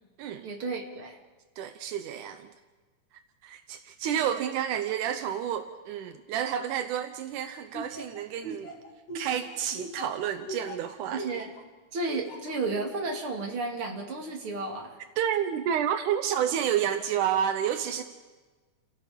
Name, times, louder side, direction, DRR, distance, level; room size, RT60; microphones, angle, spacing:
voice 1, 0.4-1.2 11.1-11.5 11.9-15.0, right 3 dB, 45° right, 1 dB, 3.3 m, -33 dB
voice 2, 1.6-2.5 3.4-8.7 9.1-11.2 15.2-18.0, right 9 dB, 80° right, 8 dB, 2.4 m, -30 dB
Laughter, 7.7-11.6 12.1-12.5, right 1 dB, 85° left, 4.4 m, -39 dB
29.5 x 17.0 x 5.2 m, 1.3 s
omnidirectional pair, 3.6 m